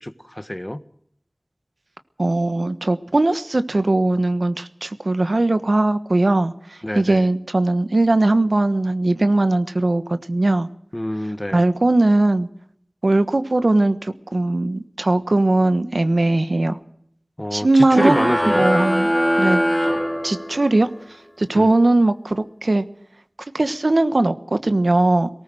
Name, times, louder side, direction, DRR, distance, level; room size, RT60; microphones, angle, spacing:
voice 1, 0.0-0.8 6.8-7.2 10.9-11.6 17.4-18.7 21.5-21.7, left 1 dB, 20° left, 13 dB, 1.3 m, -26 dB
voice 2, 2.2-10.7 11.5-12.5 13.0-16.8 17.5-19.1 19.4-19.6 20.2-20.9 21.4-22.8 23.5-25.3, right 2 dB, 85° right, 11 dB, 1.3 m, -19 dB
sound 1, 17.9-20.8, equal, 5° left, 2.8 m, -21 dB
19.0 x 18.5 x 7.7 m, 0.67 s
wide cardioid pair, 40°, 0 cm